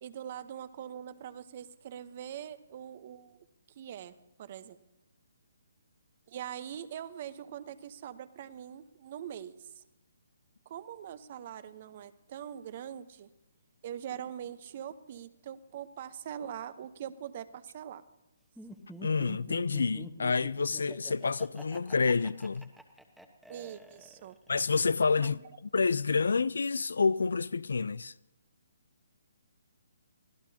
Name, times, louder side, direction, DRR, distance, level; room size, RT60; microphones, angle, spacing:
voice 1, 0.0-3.4 3.8-4.8 6.3-9.8 10.7-13.3 13.8-18.0 23.5-24.4 25.2-25.4, right 10 dB, 40° right, 0.9 m, -43 dB
Laughter, 18.6-24.5, right 1 dB, ahead, 1.2 m, -48 dB
voice 2, 19.0-22.7 24.5-25.4 25.7-28.1, left 4 dB, 80° left, 0.4 m, -28 dB
24.5 x 16.0 x 2.8 m
hypercardioid pair, 150°, 0 cm